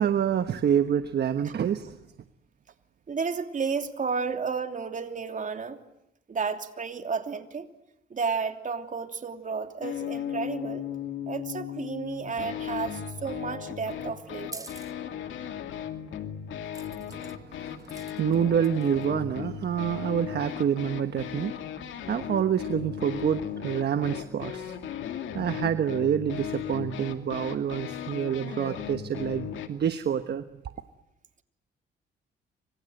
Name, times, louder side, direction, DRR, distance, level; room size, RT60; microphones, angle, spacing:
voice 1, 0.0-2.0 17.5-21.5 22.1-24.8 25.3-30.4, right 8 dB, 55° right, 10 dB, 1.2 m, -27 dB
voice 2, 3.1-5.8 6.3-7.7 8.1-10.9 11.3-14.7 15.4-15.5, right 5 dB, 40° right, 6 dB, 3.0 m, -32 dB
sound 1, 9.8-29.7, left 9 dB, 75° left, 2.6 m, -36 dB
sound 2, 13.9-14.9 16.7-17.4 17.8-18.3 18.6-19.0, right 2 dB, 15° right, 1.7 m, -45 dB
28.5 x 26.0 x 7.9 m, 0.84 s
cardioid pair, 90°, 20 cm